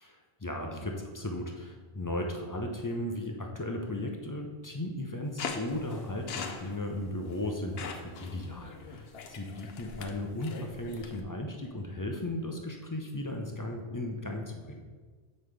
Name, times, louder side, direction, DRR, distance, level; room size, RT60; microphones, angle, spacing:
voice 1, 0.4-14.8, left 1 dB, 25° left, 2 dB, 0.4 m, -36 dB
sound 1, 5.4-11.2, left 5 dB, 70° left, 0.9 m, -42 dB
7.7 x 5.3 x 3.3 m, 1.5 s
omnidirectional pair, 1.1 m